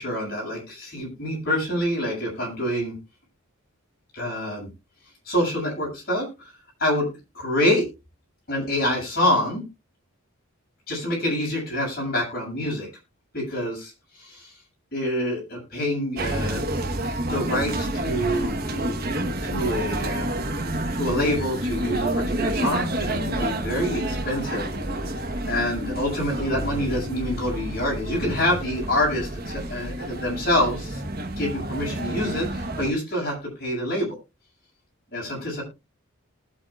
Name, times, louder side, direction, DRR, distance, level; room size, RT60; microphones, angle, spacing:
voice 1, 0.0-2.9 4.1-4.7 5.3-6.5 6.8-7.1 7.3-7.9 8.5-9.6 10.9-12.9 13.3-14.6 14.9-16.8 17.3-18.5 19.4-20.3 20.9-24.7 24.9-25.1 25.5-31.0 31.4-34.2 35.1-35.6, left 1 dB, 45° left, -2 dB, 7.6 m, -26 dB
sound 1, 16.2-32.9, right 1 dB, 45° right, 1.4 m, -29 dB
20.0 x 8.3 x 2.5 m, 0.26 s
head